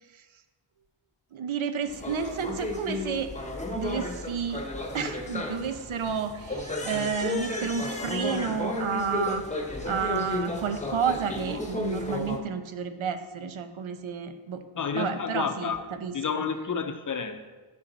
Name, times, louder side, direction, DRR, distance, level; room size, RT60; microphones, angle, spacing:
voice 1, 1.3-3.3 3.6-4.6 4.9-9.4 9.8-14.6 14.9-16.4, right 6 dB, 75° right, 8 dB, 1.0 m, -31 dB
sound 1, 1.9-12.4, left 2 dB, 15° left, 1.0 m, -33 dB
voice 2, 14.8-15.8 16.1-17.5, left 6 dB, 40° left, 8 dB, 0.7 m, -30 dB
9.6 x 7.1 x 4.0 m, 1.3 s
wide cardioid pair, 140°, 48 cm